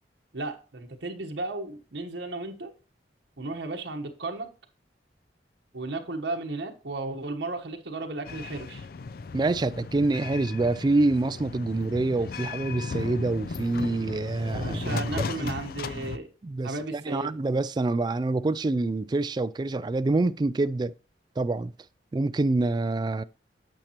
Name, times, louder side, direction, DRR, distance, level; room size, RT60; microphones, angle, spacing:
voice 1, 0.3-2.7 3.4-4.5 5.7-8.9 14.4-16.3 16.6-17.3, right 2 dB, 85° right, 1.1 m, -34 dB
sound 1, 8.3-16.2, left 4 dB, 55° left, 0.4 m, -36 dB
voice 2, 9.3-15.5 16.0-16.1 16.4-20.9 21.4-21.7 22.1-23.2, right 2 dB, 25° right, 0.3 m, -26 dB
9.0 x 6.6 x 2.9 m
head